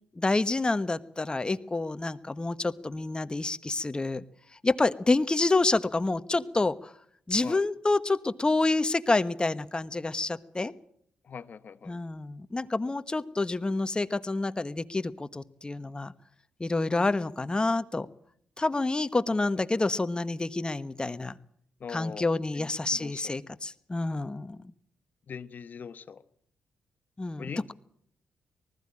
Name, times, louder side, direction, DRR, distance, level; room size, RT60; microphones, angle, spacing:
voice 1, 0.1-4.2 4.6-6.9 7.3-10.7 11.9-16.1 16.6-18.1 18.6-21.4 21.9-24.6 27.2-27.7, left 2 dB, 25° left, 14 dB, 1.3 m, -28 dB
voice 2, 11.2-12.0 19.3-19.4 19.8-19.9 21.8-22.3 22.5-23.2 25.3-26.2 27.4-27.7, left 6 dB, 55° left, 14 dB, 1.2 m, -42 dB
19.5 x 15.0 x 8.8 m, 0.66 s
supercardioid pair, 50°, 4 cm